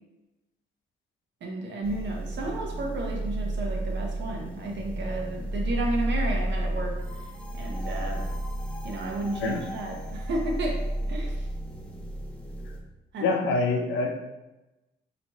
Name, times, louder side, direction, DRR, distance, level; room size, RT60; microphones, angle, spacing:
voice 1, 1.4-7.3 7.5-8.2 8.8-10.8 11.1-11.5 13.1-13.3, right 2 dB, 65° right, 0 dB, 1.0 m, -32 dB
sound 1, 1.8-12.8, right 1 dB, 5° left, 0.6 m, -32 dB
voice 2, 13.2-14.1, left 3 dB, 85° left, 2 dB, 0.7 m, -25 dB
4.2 x 3.0 x 2.9 m, 1.0 s
cardioid pair, 90°, 20 cm